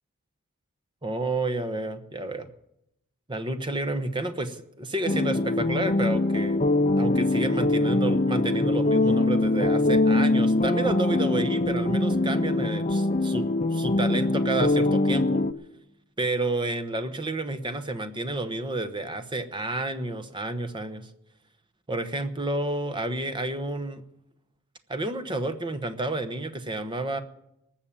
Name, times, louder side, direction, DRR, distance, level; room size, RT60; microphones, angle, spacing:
voice 1, 1.0-2.5 3.3-6.6 7.0-15.4 16.2-21.1 21.9-24.0 24.9-27.2, right 2 dB, 20° right, 10 dB, 1.0 m, -30 dB
sound 1, 5.1-15.5, left 2 dB, 30° left, 0.6 m, -23 dB
19.5 x 7.3 x 8.7 m, 0.82 s
head